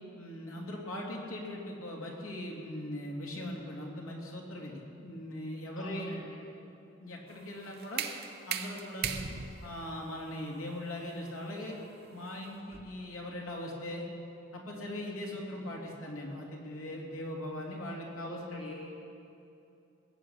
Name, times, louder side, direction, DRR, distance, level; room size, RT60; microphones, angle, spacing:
voice 1, 0.1-6.1 7.0-8.1 8.5-9.3 9.6-11.8 12.1-14.0 14.5-18.8, left 1 dB, 90° left, -2 dB, 3.1 m, -40 dB
voice 2, 5.8-6.4 18.2-18.7, left 1 dB, 65° left, -4 dB, 1.9 m, -43 dB
sound 1, 7.3-13.1, right 7 dB, 50° right, 0.9 m, -40 dB
20.5 x 7.6 x 8.7 m, 2.7 s
head